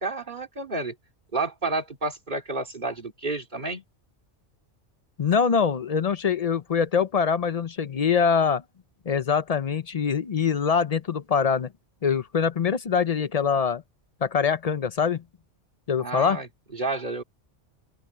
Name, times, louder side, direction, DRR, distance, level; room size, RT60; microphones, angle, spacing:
voice 1, 0.0-0.9 1.3-3.8 16.0-17.2, right 3 dB, 40° right, 2.9 m, -30 dB
voice 2, 5.2-8.6 9.1-11.7 12.0-13.8 14.2-15.2 15.9-16.4, left 6 dB, 45° left, 0.5 m, -24 dB
open air
omnidirectional pair, 1.2 m